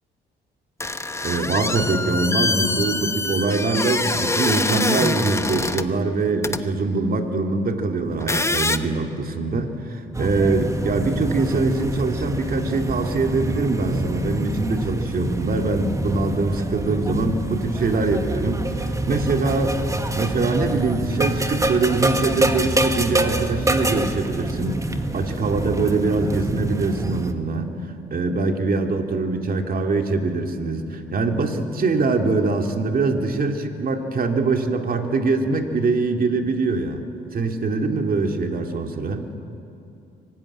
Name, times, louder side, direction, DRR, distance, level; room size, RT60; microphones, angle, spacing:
sound 1, 0.8-5.9 6.4-6.6 8.1-8.8, left 2 dB, 15° left, 1.0 m, -24 dB
voice 1, 1.2-19.8 20.1-27.7 28.1-37.0 37.3-39.2, right 3 dB, 45° right, 4 dB, 2.5 m, -23 dB
sound 2, 10.1-27.3, right 1 dB, 15° right, 1.7 m, -26 dB
24.0 x 19.5 x 9.9 m, 2.7 s
cardioid pair, 90°, 20 cm